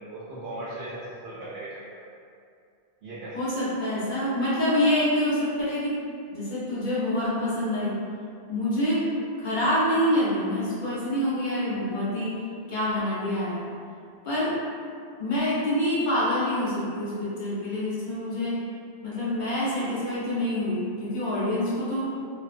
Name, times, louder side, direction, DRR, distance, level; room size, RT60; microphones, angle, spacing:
voice 1, 0.0-2.0 3.0-3.4, right 1 dB, 80° right, -9 dB, 0.8 m, -38 dB
voice 2, 3.3-6.0 6.3-8.0 8.5-9.0 9.4-12.4 12.7-13.7 14.2-14.5 15.2-18.6 19.0-22.1, left 1 dB, 50° left, -9 dB, 0.8 m, -26 dB
2.5 x 2.2 x 2.4 m, 2.3 s
omnidirectional pair, 1.1 m